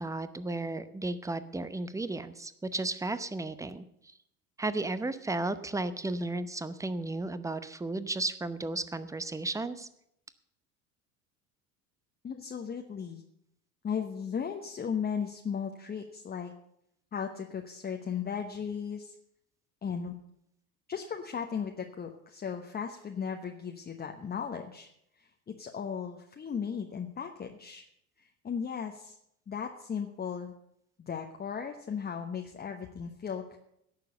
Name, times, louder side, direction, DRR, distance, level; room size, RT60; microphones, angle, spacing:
voice 1, 0.0-3.8 4.6-9.9, right 2 dB, 5° right, 13 dB, 0.8 m, -34 dB
voice 2, 12.2-13.2 13.8-16.5 17.1-19.2 19.8-20.1 20.9-24.9 25.2-27.9 28.2-29.2 29.5-30.5 31.0-33.6, left 7 dB, 20° left, 3 dB, 1.0 m, -36 dB
17.0 x 6.8 x 6.8 m, 0.76 s
figure-of-eight pair, 65°, 44 cm